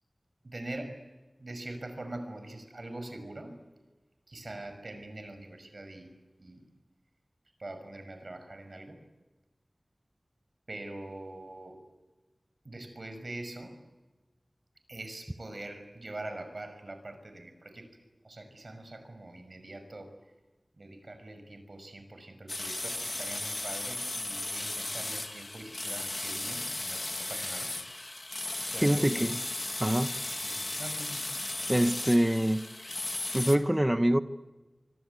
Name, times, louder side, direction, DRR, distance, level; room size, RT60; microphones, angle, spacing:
voice 1, 0.4-1.0 1.4-3.6 4.3-6.1 6.4-6.6 7.6-9.0 10.7-11.8 12.6-13.8 14.9-17.9 18.2-20.1 20.8-27.7 28.7-29.2 30.4-31.3, right 2 dB, 60° right, 6.0 m, -43 dB
sound 1, 22.5-33.6, left 2 dB, 45° left, 2.3 m, -36 dB
voice 2, 28.8-29.4 29.8-30.1 31.7-32.7 33.3-34.2, right 1 dB, 15° right, 1.1 m, -25 dB
25.5 x 25.0 x 8.5 m
wide cardioid pair, 55°, 0 cm